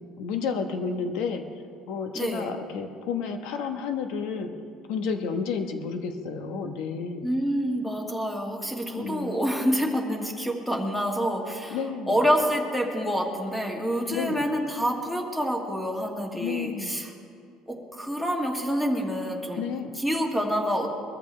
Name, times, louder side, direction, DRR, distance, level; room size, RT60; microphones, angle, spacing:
voice 1, 0.2-1.4 1.9-4.5 4.9-7.3 8.9-9.4 11.7-12.2 14.1-14.4 16.4-17.0 19.6-19.9, left 5 dB, 75° left, 6 dB, 1.2 m, -31 dB
voice 2, 2.1-2.5 7.2-11.8 12.1-17.1 17.7-19.6 20.0-20.9, equal, 5° left, 0 dB, 1.7 m, -27 dB
22.0 x 14.0 x 3.4 m, 2.3 s
cardioid pair, 150°, 0 cm